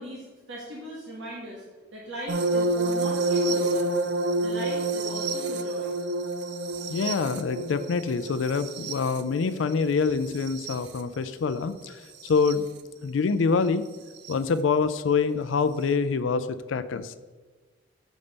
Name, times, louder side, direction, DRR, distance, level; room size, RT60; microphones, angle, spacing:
voice 1, 0.0-1.6 1.9-3.9 4.4-5.9, right 1 dB, 80° right, -4 dB, 1.5 m, -39 dB
sound 1, 2.3-11.0 12.3-12.5 14.2-14.3, right 2 dB, 60° right, 0.5 m, -28 dB
voice 2, 6.9-12.7 13.0-13.9 14.3-17.2, left 5 dB, 85° left, 12 dB, 0.4 m, -26 dB
7.1 x 5.1 x 5.4 m, 1.4 s
head